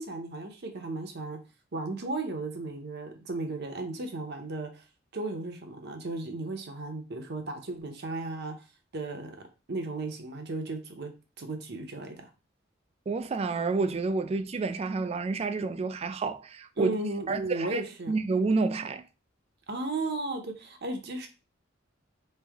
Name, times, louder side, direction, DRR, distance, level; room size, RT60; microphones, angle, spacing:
voice 1, 0.0-1.4 1.7-4.8 5.1-8.5 8.9-9.4 9.7-12.3 16.8-18.1 19.7-21.3, right 2 dB, 60° right, 0.8 m, -35 dB
voice 2, 13.1-16.9 17.3-17.8 18.1-19.0, right 4 dB, 30° right, 0.3 m, -29 dB
3.3 x 2.6 x 3.5 m
head